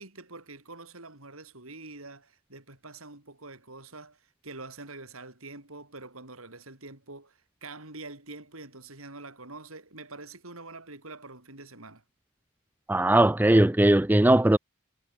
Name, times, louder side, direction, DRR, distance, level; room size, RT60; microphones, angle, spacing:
voice 1, 0.0-12.0, right 3 dB, 85° right, 7.0 m, -45 dB
voice 2, 12.9-14.6, right 1 dB, 10° right, 0.4 m, -19 dB
head